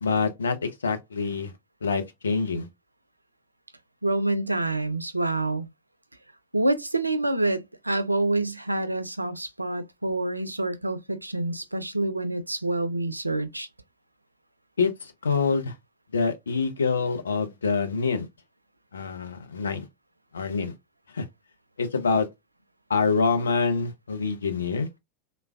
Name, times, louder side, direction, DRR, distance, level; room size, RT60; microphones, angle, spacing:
voice 1, 0.0-1.5 1.8-2.7 14.8-15.7 16.1-18.3 18.9-19.9 20.3-20.7 21.1-21.3 21.8-22.3 22.9-25.0, left 4 dB, 70° left, 0.5 m, -26 dB
voice 2, 4.0-5.7 6.5-13.7, right 2 dB, 85° right, 0.3 m, -27 dB
3.2 x 2.1 x 2.3 m
figure-of-eight pair, 90°, 0 cm